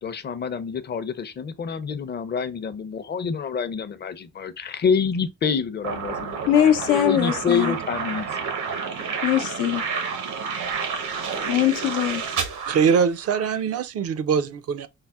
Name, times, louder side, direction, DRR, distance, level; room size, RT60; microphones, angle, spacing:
voice 1, 0.0-8.3, left 6 dB, 35° left, 0.5 m, -27 dB
sound 1, 5.8-13.6, right 5 dB, 75° right, 0.9 m, -30 dB
voice 2, 6.5-7.8 9.2-9.8 11.5-12.2, left 11 dB, 85° left, 0.7 m, -21 dB
voice 3, 12.7-14.9, right 6 dB, 55° right, 0.4 m, -22 dB
5.5 x 2.0 x 2.3 m
cardioid pair, 90°, 30 cm